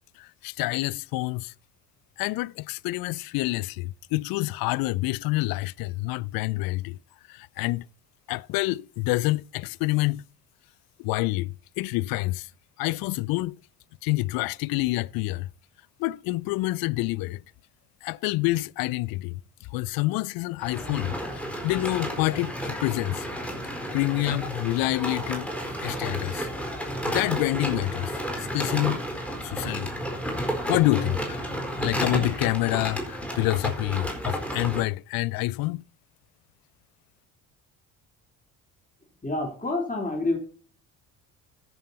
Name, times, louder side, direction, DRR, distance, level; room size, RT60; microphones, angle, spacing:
voice 1, 0.2-1.5 2.2-7.0 7.3-7.9 8.3-10.2 11.0-12.5 12.8-13.5 14.0-15.5 16.0-17.4 18.0-19.4 19.7-21.2 21.6-23.3 23.9-25.5 25.8-26.5 27.1-28.1 28.4-29.0 29.4-29.9 30.7-31.4 31.8-35.8, left 20 dB, 55° left, 0.5 m, -27 dB
sound 1, 20.6-34.8, equal, 5° left, 4.3 m, -32 dB
voice 2, 39.2-40.4, left 2 dB, 20° left, 3.6 m, -27 dB
14.0 x 6.5 x 4.3 m
figure-of-eight pair, 55°, 44 cm